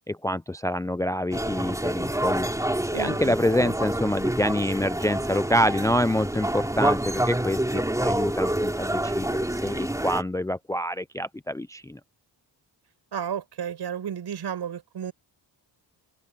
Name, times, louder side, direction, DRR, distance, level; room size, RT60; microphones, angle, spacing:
voice 1, 0.1-2.5 2.9-12.0, left 1 dB, 10° left, 0.5 m, -26 dB
sound 1, 1.3-10.2, right 1 dB, 5° right, 3.5 m, -27 dB
voice 2, 2.9-3.7 13.1-15.1, right 8 dB, 65° right, 7.1 m, -33 dB
cardioid pair, 85°, 43 cm